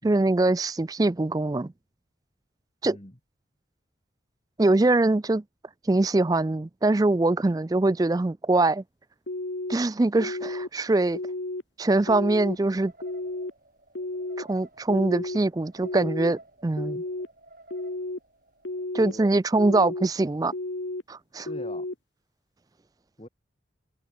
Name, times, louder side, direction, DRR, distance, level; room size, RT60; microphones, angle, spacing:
voice 1, 0.0-1.7 2.8-3.0 4.6-5.4 5.9-8.8 9.7-11.2 11.8-12.9 14.4-17.0 18.9-20.5 21.1-21.5, right 2 dB, 20° right, 0.3 m, -23 dB
voice 2, 2.8-3.2 19.0-19.3 21.4-21.9 23.2-23.3, left 1 dB, 30° left, 3.0 m, -43 dB
sound 1, 9.3-9.7 10.2-10.7 11.1-11.6 12.1-12.6 13.0-13.5 13.9-14.4 14.9-15.4 15.8-16.3 16.8-17.3 17.7-18.2 18.6-19.1 19.6-20.1 20.5-21.0 21.5-21.9, left 2 dB, 70° left, 1.5 m, -32 dB
sound 2, 11.9-18.9, right 2 dB, 45° right, 4.1 m, -54 dB
open air
head